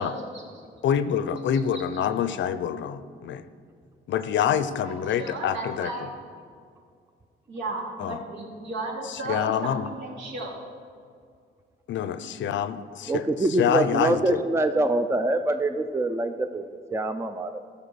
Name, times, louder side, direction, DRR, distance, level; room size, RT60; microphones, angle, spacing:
voice 1, 0.0-0.4 1.7-1.8 4.8-6.1 7.5-10.6, right 2 dB, 70° right, -2 dB, 2.8 m, -34 dB
voice 2, 0.8-3.5 4.1-5.9 8.0-8.2 9.1-9.9 11.9-13.2 13.6-14.4, left 9 dB, 70° left, 13 dB, 0.6 m, -26 dB
voice 3, 13.1-17.6, right 2 dB, 15° right, 8 dB, 0.5 m, -25 dB
14.0 x 5.6 x 6.9 m, 2.2 s
cardioid pair, 90°, 20 cm